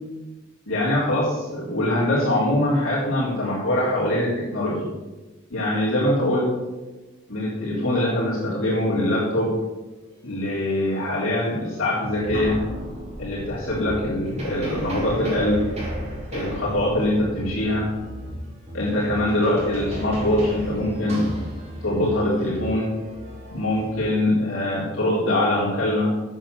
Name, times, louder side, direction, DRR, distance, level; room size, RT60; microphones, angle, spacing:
voice 1, 0.7-4.9 5.5-6.5 7.3-9.5 10.2-12.6 13.2-15.6 16.3-17.9 18.7-21.3 21.8-22.9 23.5-26.1, left 1 dB, 75° left, -7 dB, 3.8 m, -23 dB
sound 1, 11.5-11.7 12.0-23.9, equal, 30° right, 4.4 m, -34 dB
9.1 x 7.5 x 7.9 m, 1.1 s
head